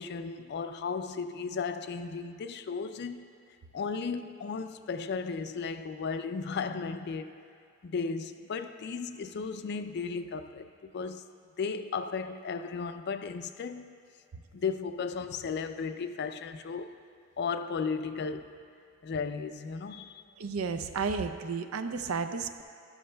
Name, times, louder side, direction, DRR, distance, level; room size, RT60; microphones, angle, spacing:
voice 1, 0.0-3.3 3.7-7.4 7.8-11.3 11.6-14.0 14.5-17.0 17.4-18.6 19.0-20.2, left 5 dB, 50° left, 0.4 m, -35 dB
voice 2, 20.4-22.6, right 5 dB, 75° right, 0.5 m, -32 dB
12.5 x 12.0 x 2.2 m
head